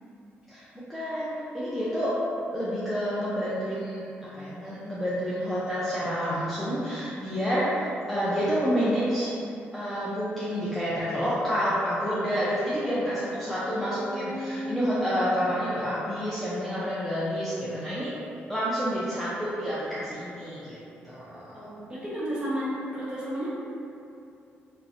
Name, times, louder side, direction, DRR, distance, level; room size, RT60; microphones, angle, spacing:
voice 1, 0.5-2.1 2.5-9.3 9.7-18.1 18.5-20.8 21.0-21.6, equal, ahead, -10 dB, 0.5 m, -29 dB
voice 2, 13.6-15.4 21.5-23.5, equal, 20° right, -9 dB, 0.9 m, -34 dB
2.5 x 2.0 x 2.5 m, 2.7 s
supercardioid pair, 60°, 5 cm